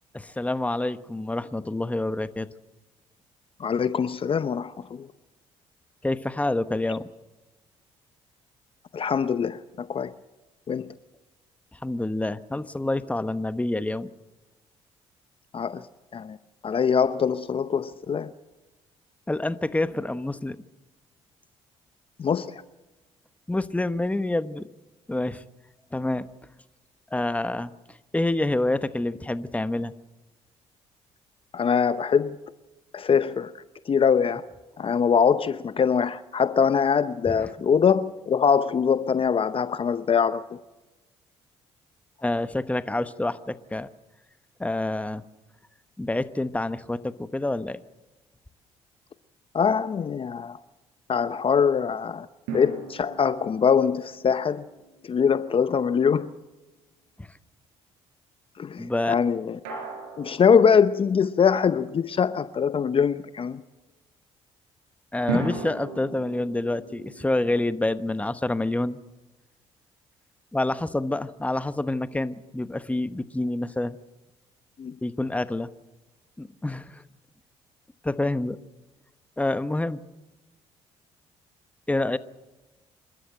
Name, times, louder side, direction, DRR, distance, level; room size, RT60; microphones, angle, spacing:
voice 1, 0.1-2.5 6.0-7.0 11.7-14.1 19.3-20.6 23.5-24.7 25.1-25.4 25.9-26.3 27.1-29.9 37.3-37.5 42.2-43.9 44.6-45.2 46.0-47.8 57.2-57.3 58.8-59.2 65.1-69.0 70.5-74.0 75.0-75.7 76.4-77.0 78.0-78.6 79.4-80.0 81.9-82.2, left 2 dB, 10° left, 1.0 m, -27 dB
voice 2, 3.6-5.1 8.9-10.1 10.7-10.9 15.5-15.8 16.1-16.4 16.6-18.3 22.2-22.6 31.5-32.4 32.9-33.5 33.9-34.4 34.8-40.6 49.5-50.6 51.1-52.3 52.5-54.7 55.1-56.3 58.6-59.6 60.2-63.6 65.3-65.4 74.8-74.9, left 6 dB, 45° left, 0.8 m, -23 dB
sound 1, 52.5-55.8 59.6-61.6 65.3-68.4, right 4 dB, 85° right, 4.5 m, -37 dB
27.0 x 13.0 x 7.7 m
supercardioid pair, 60°, 13 cm